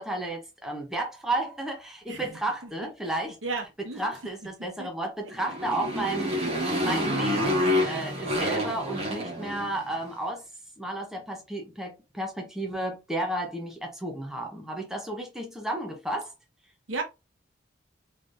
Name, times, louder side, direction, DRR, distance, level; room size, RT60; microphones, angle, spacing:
voice 1, 0.0-3.4 3.9-6.4 6.8-10.5 10.8-16.3, right 1 dB, ahead, 0.7 m, -32 dB
voice 2, 3.4-4.1 4.8-4.9 16.9-17.0, right 3 dB, 90° right, 1.1 m, -34 dB
Motorcycle, 5.3-10.0, left 1 dB, 35° right, 1.5 m, -28 dB
3.8 x 3.3 x 2.5 m
head